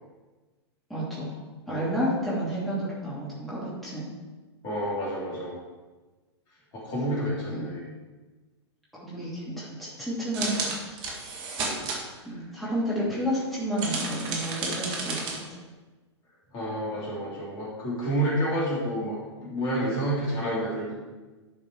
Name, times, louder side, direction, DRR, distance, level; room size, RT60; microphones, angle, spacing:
voice 1, 0.9-1.3 1.7-4.1 7.5-7.7 8.9-11.0 12.2-15.3, equal, ahead, -9 dB, 2.8 m, -31 dB
voice 2, 4.6-5.5 6.7-7.8 10.4-10.5 11.6-11.9 12.3-12.4 16.5-21.0, right 1 dB, 30° left, -5 dB, 3.0 m, -29 dB
sound 1, 10.3-12.0 13.8-15.4, right 3 dB, 35° right, 1.8 m, -32 dB
11.0 x 5.1 x 4.6 m, 1.2 s
figure-of-eight pair, 110°, 15 cm